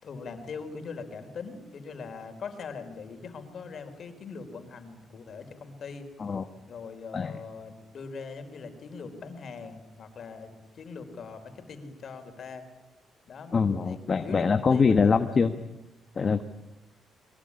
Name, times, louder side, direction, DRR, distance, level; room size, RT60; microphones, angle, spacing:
voice 1, 0.0-6.1 6.6-12.7 13.3-13.6 13.8-15.4, left 5 dB, 55° left, 7 dB, 4.3 m, -41 dB
voice 2, 13.5-15.5 16.2-16.4, left 5 dB, 40° left, 8 dB, 1.3 m, -23 dB
22.5 x 21.5 x 9.9 m, 0.98 s
cardioid pair, 90°, 0 cm